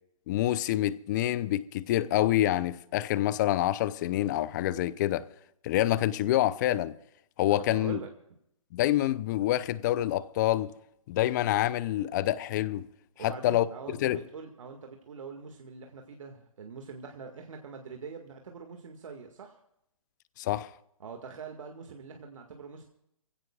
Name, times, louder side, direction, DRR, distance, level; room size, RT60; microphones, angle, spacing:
voice 1, 0.3-5.3 5.6-6.9 7.4-8.0 8.7-10.7 11.1-12.9 13.2-13.6 14.0-14.2 20.4-20.7, left 14 dB, 35° left, 0.7 m, -27 dB
voice 2, 7.5-8.1 13.2-19.6 21.0-22.8, right 5 dB, 65° right, 2.0 m, -43 dB
25.0 x 16.0 x 2.4 m
hypercardioid pair, 140°, 18 cm